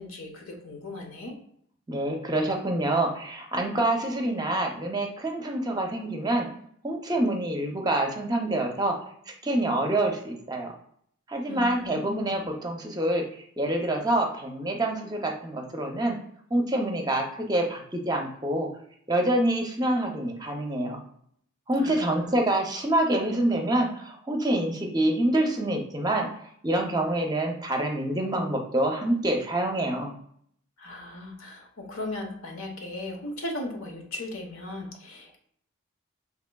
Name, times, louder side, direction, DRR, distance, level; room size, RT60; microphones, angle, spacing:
voice 1, 0.0-1.4 11.5-12.5 21.8-22.3 30.8-35.4, left 2 dB, 85° left, 2 dB, 0.9 m, -37 dB
voice 2, 1.9-6.5 6.8-9.0 9.4-10.7 11.3-13.2 13.6-16.2 16.5-18.7 19.1-21.0 21.7-26.3 26.6-30.1, right 1 dB, 20° right, 2 dB, 0.5 m, -26 dB
6.0 x 2.8 x 2.2 m, 0.67 s
head